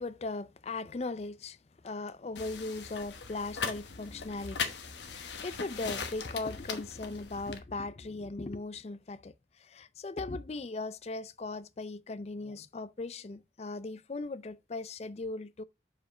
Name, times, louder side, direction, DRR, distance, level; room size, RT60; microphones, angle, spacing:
voice 1, 0.0-1.6 1.8-9.3 9.7-15.6, left 3 dB, 35° left, 0.4 m, -38 dB
sound 1, 2.4-7.6, left 5 dB, 80° left, 1.0 m, -39 dB
5.1 x 4.9 x 5.5 m
head